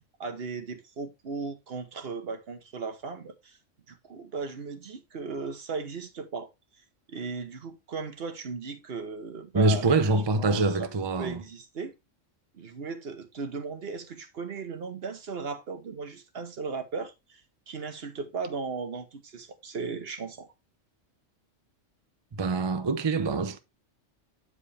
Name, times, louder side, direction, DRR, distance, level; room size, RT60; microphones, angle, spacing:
voice 1, 0.2-3.6 3.9-6.5 7.1-10.0 10.3-10.9 11.2-11.9 12.5-17.4 17.7-20.5, right 4 dB, 55° right, 1.2 m, -36 dB
voice 2, 9.5-11.4 22.3-23.6, right 3 dB, 35° right, 0.4 m, -25 dB
8.6 x 5.0 x 3.4 m
omnidirectional pair, 1.3 m